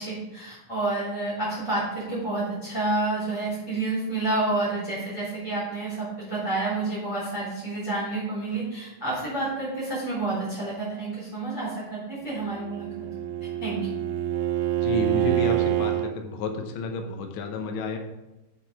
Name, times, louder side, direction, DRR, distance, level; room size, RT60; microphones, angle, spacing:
voice 1, 0.0-12.9 13.6-13.8, right 2 dB, 5° left, -11 dB, 2.9 m, -29 dB
Bowed string instrument, 12.4-16.2, right 13 dB, 85° right, 1.5 m, -26 dB
voice 2, 14.8-18.0, left 3 dB, 75° left, 4 dB, 1.1 m, -31 dB
7.4 x 6.7 x 4.8 m, 0.99 s
omnidirectional pair, 3.7 m